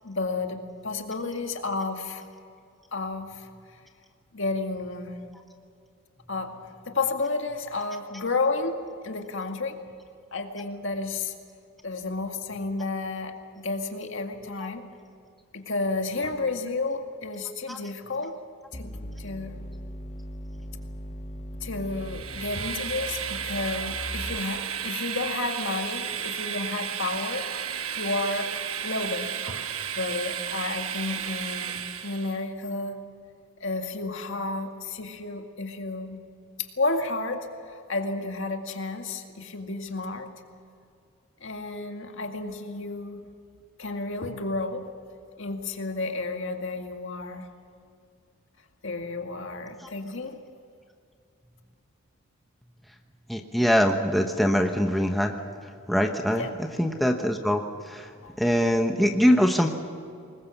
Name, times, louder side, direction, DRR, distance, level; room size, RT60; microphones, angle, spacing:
voice 1, 0.0-2.3 2.9-3.5 4.3-5.2 6.3-9.8 10.3-11.3 11.8-14.8 15.5-18.4 18.7-18.9 19.2-19.6 21.6-28.5 28.8-29.6 29.9-33.0 33.6-36.2 36.8-40.3 41.4-43.2 43.8-44.9 45.4-47.5 48.8-50.4 56.4-56.6 58.2-58.4, left 3 dB, 60° left, 4 dB, 2.0 m, -31 dB
sound 1, 18.7-24.7, equal, 35° left, 1.6 m, -39 dB
Train, 21.9-32.4, right 8 dB, 75° right, 1.2 m, -33 dB
voice 2, 53.3-55.3 55.9-58.1 58.4-59.7, equal, ahead, 3 dB, 1.1 m, -23 dB
24.5 x 21.0 x 7.2 m, 2.4 s
head